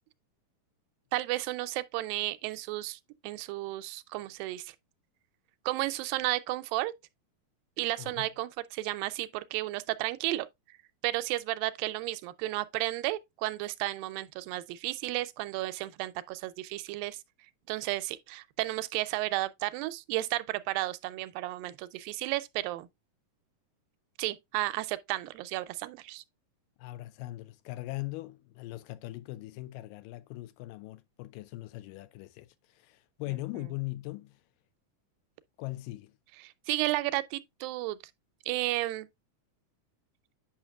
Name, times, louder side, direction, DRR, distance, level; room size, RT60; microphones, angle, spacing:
voice 1, 1.1-4.8 5.7-6.9 7.8-10.5 11.0-17.2 17.7-22.9 24.2-26.2 36.4-38.0 38.5-39.1, right 17 dB, 85° right, 2.3 m, -33 dB
voice 2, 26.8-34.4 35.6-36.1, left 19 dB, 80° left, 2.1 m, -40 dB
8.7 x 5.7 x 2.3 m
omnidirectional pair, 4.0 m